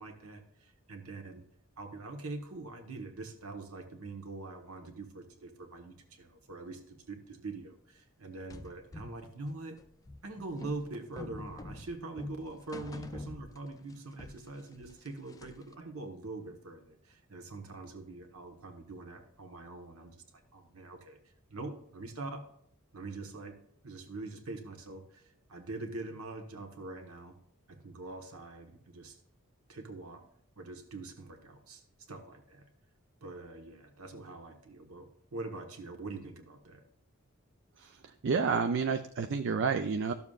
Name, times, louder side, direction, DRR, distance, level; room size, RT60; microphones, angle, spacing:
voice 1, 0.0-1.4 1.8-9.8 10.2-20.2 20.5-21.2 21.5-22.5 22.9-27.4 27.7-29.2 29.7-30.3 30.6-31.8 32.1-32.7 33.2-36.8, right 2 dB, 80° right, 5 dB, 1.3 m, -44 dB
sound 1, 8.5-13.9 14.2-15.7, left 2 dB, 15° left, 0.4 m, -46 dB
voice 2, 38.2-40.1, right 5 dB, 55° right, 8 dB, 0.4 m, -29 dB
12.5 x 7.0 x 2.4 m, 0.68 s
head